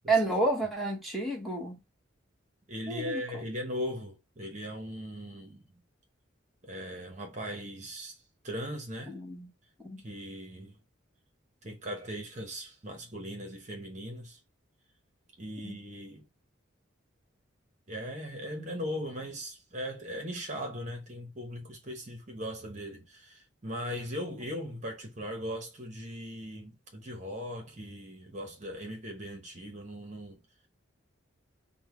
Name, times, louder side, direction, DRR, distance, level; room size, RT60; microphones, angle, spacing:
voice 1, 0.1-1.8 2.9-3.2 9.1-9.5 9.8-10.0 15.6-15.8, right 2 dB, ahead, 1.1 m, -30 dB
voice 2, 2.7-5.8 6.6-9.1 10.0-10.8 11.6-14.4 15.4-16.3 17.9-30.4, equal, 35° right, 0.9 m, -39 dB
5.4 x 2.2 x 3.0 m
head